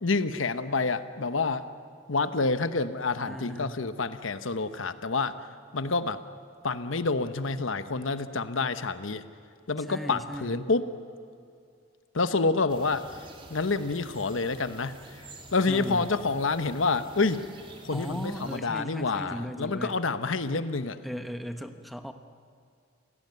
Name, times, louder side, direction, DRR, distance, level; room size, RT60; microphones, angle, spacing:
voice 1, 0.0-1.7 2.1-5.4 5.7-6.2 6.6-9.2 9.7-10.9 12.1-13.1 13.5-15.0 15.5-17.4 17.8-21.0, left 3 dB, 85° left, 11 dB, 1.1 m, -28 dB
voice 2, 3.3-3.8 9.9-10.6 15.7-16.1 17.9-20.0 21.0-22.1, equal, ahead, 7 dB, 1.0 m, -37 dB
sound 1, 12.7-18.6, right 2 dB, 25° right, 2.8 m, -49 dB
28.5 x 17.5 x 9.5 m, 2.4 s
head